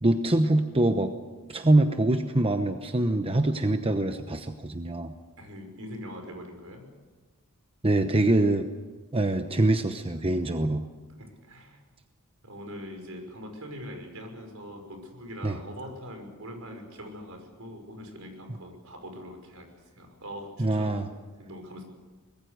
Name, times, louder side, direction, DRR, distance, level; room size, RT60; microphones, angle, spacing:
voice 1, 0.0-1.1 1.5-5.1 7.8-8.7 9.1-10.8 15.4-15.6 20.6-21.1, right 2 dB, 25° right, 7 dB, 1.0 m, -24 dB
voice 2, 5.4-6.9 11.2-11.8 12.4-19.7 20.0-21.0 21.4-21.8, equal, 70° right, 4 dB, 5.9 m, -42 dB
24.5 x 21.0 x 6.7 m, 1.3 s
head